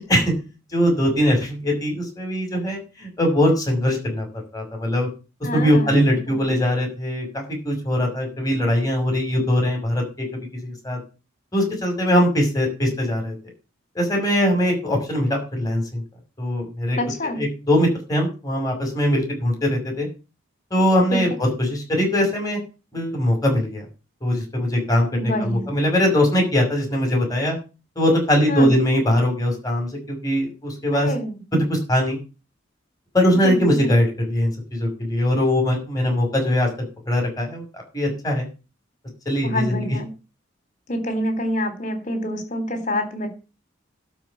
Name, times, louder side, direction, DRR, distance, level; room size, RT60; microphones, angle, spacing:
voice 1, 0.7-4.3 4.5-5.1 5.5-11.0 11.5-13.3 13.9-16.0 16.4-17.0 17.4-20.1 20.7-21.3 21.7-22.6 22.9-23.8 24.2-27.6 28.0-31.1 31.5-32.2 33.1-36.7 37.1-37.6 37.9-38.5 39.3-39.8, equal, 20° left, 2 dB, 5.9 m, -21 dB
voice 2, 5.4-6.5 17.0-17.4 21.1-21.2 25.1-25.7 28.5-28.7 30.9-31.4 33.3-34.0 39.4-40.1 40.9-43.3, equal, 40° left, 8 dB, 3.6 m, -27 dB
12.0 x 5.5 x 8.6 m, 0.31 s
head